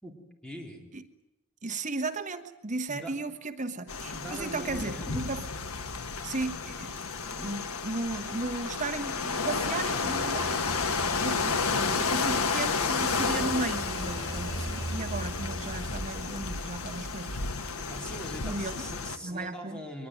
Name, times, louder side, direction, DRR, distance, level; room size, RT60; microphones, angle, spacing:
voice 1, 0.4-0.8 2.9-3.1 4.1-5.3 17.9-20.1, right 1 dB, 5° left, 1 dB, 4.1 m, -41 dB
voice 2, 1.6-5.4 6.2-7.0 7.3-10.6 11.2-17.4 18.4-18.8 19.2-19.8, right 3 dB, 35° right, 8 dB, 1.3 m, -35 dB
sound 1, 3.9-19.2, left 4 dB, 85° left, 1.4 m, -31 dB
sound 2, 8.9-18.2, right 1 dB, 20° right, 5.9 m, -42 dB
23.0 x 21.5 x 9.4 m, 0.94 s
head